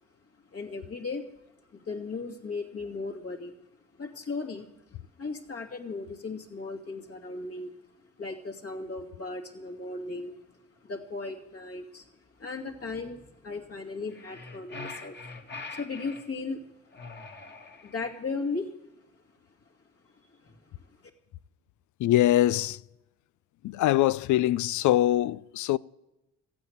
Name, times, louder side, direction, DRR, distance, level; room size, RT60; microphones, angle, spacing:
voice 1, 0.5-1.3 1.8-3.5 4.0-7.7 8.2-10.3 10.8-12.1 12.4-15.2 15.7-16.7 17.5-17.6 17.8-18.7 20.4-20.6, left 3 dB, 50° left, 2.5 m, -36 dB
sound 1, 14.1-16.3 16.9-18.2, left 3 dB, 35° left, 2.1 m, -43 dB
voice 2, 22.0-22.8 23.6-25.8, left 14 dB, 75° left, 0.5 m, -23 dB
14.5 x 8.7 x 9.4 m
cardioid pair, 90°, 30 cm